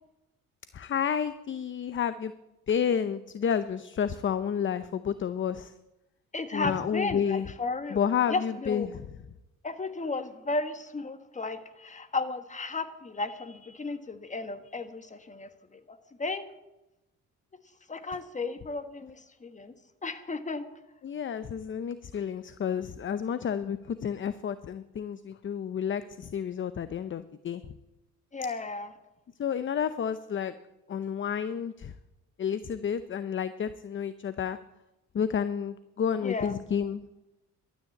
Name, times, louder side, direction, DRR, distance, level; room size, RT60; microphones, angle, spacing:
voice 1, 0.7-2.3 2.7-5.7 6.5-7.5 7.9-8.9 21.0-27.6 29.4-30.5 30.9-31.9 32.4-34.6 35.1-37.0, left 8 dB, 40° left, 13 dB, 0.7 m, -30 dB
voice 2, 6.3-8.0 8.3-8.9 9.6-16.4 17.9-19.7 20.0-20.7 28.3-28.9 36.2-36.5, left 3 dB, 25° left, 10 dB, 1.5 m, -34 dB
12.5 x 9.4 x 8.5 m, 0.95 s
cardioid pair, 90°, 30 cm